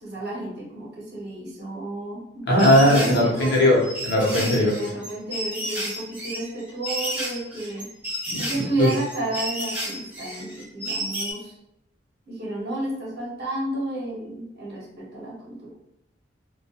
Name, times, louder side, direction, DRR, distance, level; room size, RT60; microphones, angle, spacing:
voice 1, 0.0-2.2 2.8-3.7 4.3-7.9 8.4-11.5 12.3-15.7, right 2 dB, 55° right, -4 dB, 0.8 m, -31 dB
voice 2, 2.5-4.7 8.3-8.9, left 1 dB, 60° left, -3 dB, 0.7 m, -19 dB
sound 1, 2.6-11.3, equal, 10° right, 0.7 m, -32 dB
2.2 x 2.1 x 2.7 m, 0.81 s
head